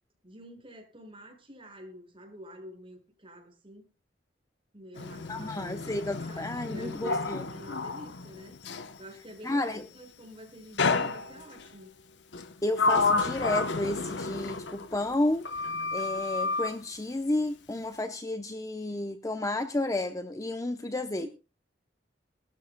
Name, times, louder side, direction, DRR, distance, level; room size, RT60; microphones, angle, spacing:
voice 1, 0.2-3.9 4.7-8.6 9.0-12.0 21.2-21.3, left 1 dB, 30° right, 5.5 m, -47 dB
Sliding door, 5.0-9.0 10.8-11.7 12.3-15.2 15.5-16.8, left 3 dB, 70° left, 0.9 m, -31 dB
voice 2, 5.3-7.4 9.4-9.9 12.6-15.5 15.9-21.3, left 2 dB, 20° left, 0.7 m, -31 dB
20.0 x 13.0 x 2.2 m
head